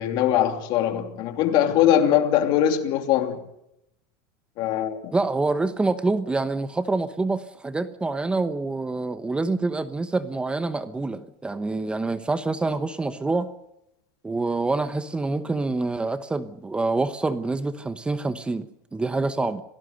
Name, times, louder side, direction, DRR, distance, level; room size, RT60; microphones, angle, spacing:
voice 1, 0.0-3.4 4.6-5.1, left 10 dB, 50° left, 3.0 m, -21 dB
voice 2, 5.1-13.5 14.2-19.6, right 3 dB, 10° right, 1.0 m, -26 dB
27.5 x 18.0 x 6.7 m
supercardioid pair, 130°, 10 cm